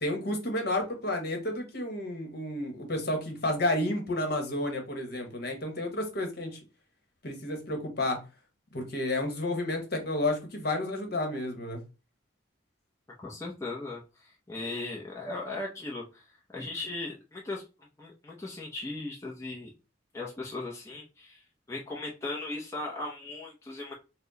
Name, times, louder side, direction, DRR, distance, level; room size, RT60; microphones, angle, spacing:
voice 1, 0.0-6.6 7.2-8.2 8.7-11.8, left 1 dB, 55° left, 1.1 m, -31 dB
voice 2, 13.2-17.6 18.0-19.7 20.1-23.9, left 2 dB, 15° left, 0.7 m, -38 dB
4.3 x 2.1 x 3.9 m
head